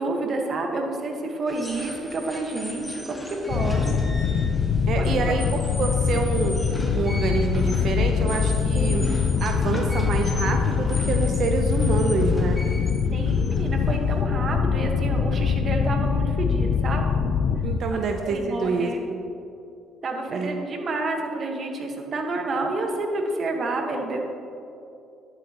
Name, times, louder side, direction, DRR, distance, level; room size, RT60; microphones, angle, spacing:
voice 1, 0.0-4.0 5.0-5.4 8.7-9.2 13.1-17.1 18.2-19.0 20.0-24.2, right 2 dB, 45° right, 2 dB, 1.4 m, -29 dB
sound 1, 1.5-14.2, left 1 dB, 5° left, 2.0 m, -38 dB
sound 2, 3.5-17.8, left 6 dB, 60° left, 0.5 m, -23 dB
voice 2, 4.9-6.6 6.9-9.0 9.4-12.6 17.6-19.2 20.3-20.7, right 4 dB, 65° right, 4 dB, 0.7 m, -27 dB
11.5 x 9.0 x 3.0 m, 2.7 s
cardioid pair, 85°, 0 cm